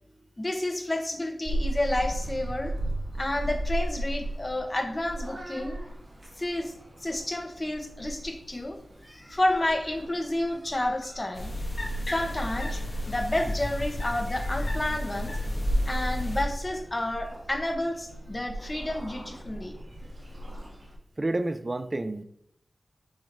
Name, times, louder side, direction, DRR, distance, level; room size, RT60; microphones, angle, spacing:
voice 1, 0.4-2.7 3.2-5.8 6.4-6.7 7.0-8.8 9.0-11.5 12.1-12.8 13.1-15.3 15.9-19.7, left 1 dB, 30° left, 4 dB, 0.9 m, -30 dB
Purr / Meow, 1.4-20.9, right 1 dB, 65° right, 1.9 m, -36 dB
sound 1, 11.3-16.4, left 1 dB, 50° left, 1.6 m, -32 dB
voice 2, 21.2-22.2, right 2 dB, 35° right, 11 dB, 0.5 m, -29 dB
7.1 x 5.0 x 2.6 m, 0.74 s
wide cardioid pair, 75°, 0 cm